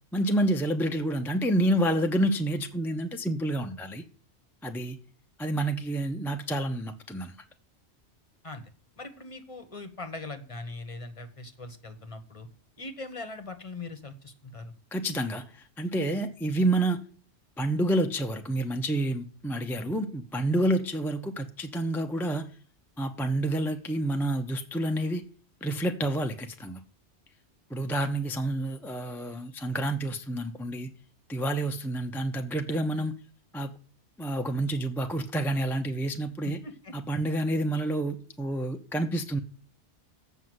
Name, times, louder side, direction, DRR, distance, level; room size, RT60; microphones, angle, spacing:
voice 1, 0.1-4.0 4.6-5.0 5.4-7.3 14.9-17.0 17.6-22.5 23.0-25.2 25.6-26.8 27.7-30.9 31.3-33.1 33.5-33.7 34.2-36.6 36.9-39.4, right 1 dB, 5° left, 0.5 m, -28 dB
voice 2, 9.0-12.5 12.8-14.7 36.4-36.9, left 3 dB, 30° left, 1.1 m, -41 dB
7.8 x 5.6 x 7.7 m
omnidirectional pair, 1.2 m